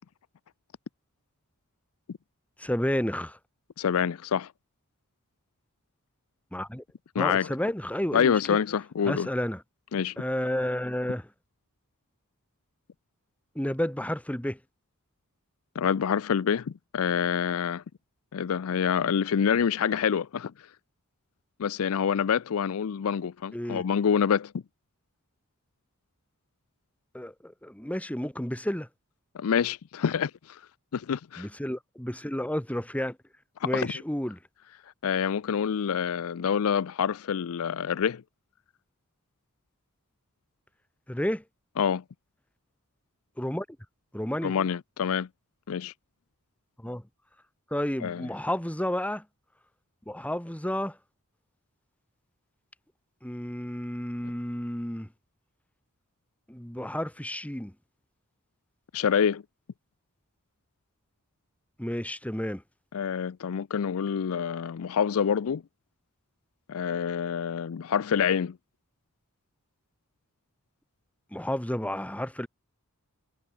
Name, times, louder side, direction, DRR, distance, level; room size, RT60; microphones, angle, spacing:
voice 1, 2.6-3.4 6.5-6.8 7.1-8.6 9.0-9.6 10.2-11.3 13.5-14.6 23.5-23.8 27.1-28.9 31.4-33.2 33.6-34.4 41.1-41.4 43.4-43.6 44.1-44.5 46.8-47.0 47.7-49.2 50.1-51.0 53.2-55.1 56.5-57.7 61.8-62.6 71.3-72.5, left 1 dB, 5° left, 1.6 m, -31 dB
voice 2, 3.8-4.5 7.1-7.5 8.1-9.3 9.9-10.1 15.8-17.8 18.3-20.5 21.6-24.5 29.3-30.6 30.9-31.5 33.6-33.9 35.0-38.2 41.8-42.0 44.4-45.3 45.7-45.9 48.0-48.3 58.9-59.4 62.9-65.6 66.7-68.6, left 7 dB, 70° left, 0.4 m, -27 dB
head